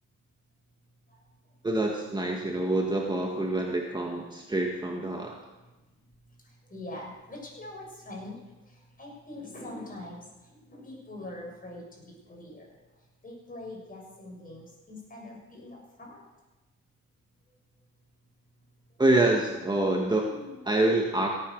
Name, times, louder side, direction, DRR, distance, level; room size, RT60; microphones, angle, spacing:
voice 1, 1.6-5.4 19.0-20.3 20.6-21.3, right 2 dB, 15° right, 0 dB, 1.7 m, -26 dB
voice 2, 6.4-8.3 8.6-10.2 10.5-12.8 13.2-16.2 20.3-20.6, left 1 dB, 30° left, -2 dB, 6.8 m, -43 dB
17.0 x 9.2 x 6.6 m, 1.1 s
cardioid pair, 90°, 30 cm